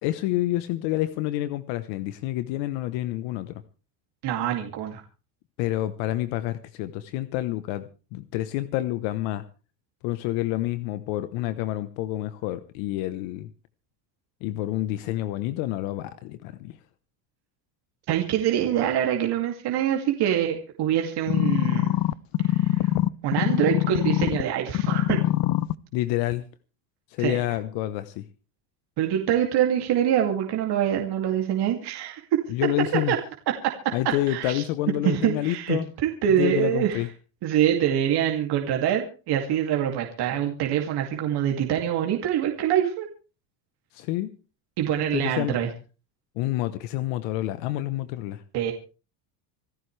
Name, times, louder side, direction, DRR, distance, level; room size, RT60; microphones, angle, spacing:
voice 1, 0.0-3.5 5.6-7.8 8.1-9.4 10.0-13.5 14.4-16.7 25.9-26.4 27.1-28.2 32.5-33.1 33.9-35.8 36.4-37.1 43.9-44.3 45.1-45.6 46.4-48.4, left 15 dB, 70° left, 12 dB, 1.1 m, -28 dB
voice 2, 4.2-5.0 18.1-21.9 22.5-22.9 23.2-25.2 27.2-27.4 29.0-32.4 33.1-33.2 34.3-34.6 35.0-37.0 37.4-43.1 44.8-45.7 48.5-48.7, right 10 dB, 55° right, 2 dB, 2.6 m, -25 dB
sound 1, 21.3-24.4 24.7-25.7 26.3-26.4, left 15 dB, 50° left, 0.7 m, -23 dB
26.0 x 13.0 x 3.3 m, 0.35 s
supercardioid pair, 110°, 46 cm